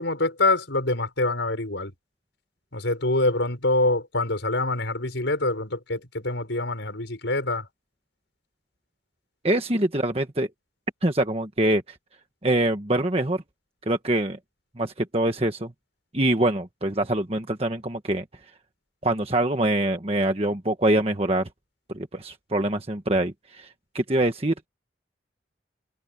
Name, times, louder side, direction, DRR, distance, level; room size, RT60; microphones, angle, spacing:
voice 1, 0.0-1.9 2.7-7.7, left 2 dB, 80° left, 5.4 m, -25 dB
voice 2, 9.4-10.5 11.0-12.0 12.4-13.4 13.9-14.4 14.8-15.7 16.1-18.2 19.0-21.5 21.9-23.7 23.9-24.5, right 1 dB, 30° right, 1.4 m, -24 dB
head